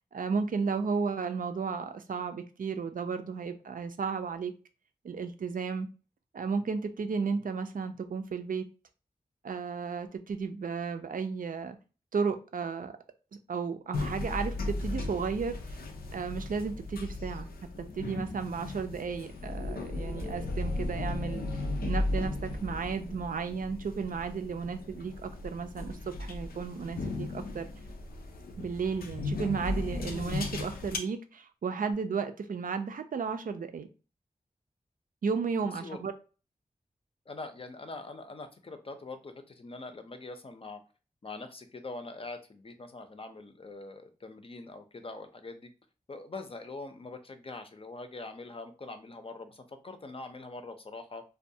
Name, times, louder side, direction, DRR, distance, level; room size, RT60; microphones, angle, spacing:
voice 1, 0.1-4.5 5.0-5.9 6.3-8.7 9.4-11.8 12.1-12.9 13.5-15.8 16.1-17.5 17.9-27.6 28.6-33.9 35.2-36.1, right 5 dB, 70° right, 8 dB, 0.4 m, -33 dB
Old Lift Open Close travel down, 13.9-31.0, left 2 dB, 90° left, 0.4 m, -36 dB
voice 2, 37.3-40.8 41.2-45.7 46.1-51.2, left 3 dB, 40° left, 7 dB, 0.5 m, -43 dB
2.3 x 2.2 x 2.7 m, 0.33 s
cardioid pair, 45°, 15 cm